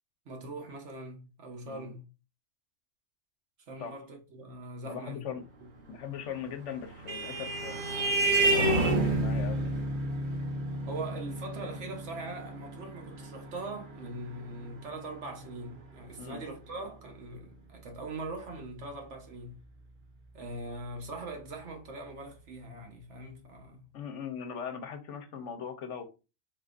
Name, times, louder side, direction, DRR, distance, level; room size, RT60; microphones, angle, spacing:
voice 1, 0.2-2.0 3.7-5.2 5.6-5.7 10.9-19.6 20.3-23.9, right 2 dB, 75° right, 1.3 m, -41 dB
voice 2, 4.8-5.4 5.9-7.8 8.4-9.8 16.2-16.4 23.9-26.1, left 7 dB, 80° left, 1.1 m, -40 dB
Vehicle horn car horn honking, 6.5-15.4, right 2 dB, 45° right, 1.1 m, -30 dB
3.9 x 3.8 x 2.5 m
omnidirectional pair, 1.2 m